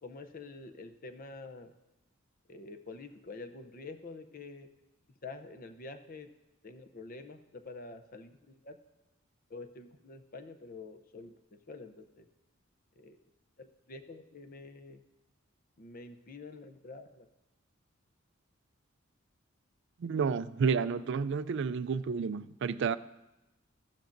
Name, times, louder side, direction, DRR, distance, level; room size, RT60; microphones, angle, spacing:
voice 1, 0.0-1.7 2.5-4.7 5.2-6.3 6.6-8.8 9.5-12.3 13.0-13.2 13.6-15.0 15.8-17.3, left 3 dB, 45° left, 0.6 m, -47 dB
voice 2, 20.0-23.0, right 5 dB, 60° right, 0.4 m, -30 dB
14.5 x 12.5 x 2.6 m
head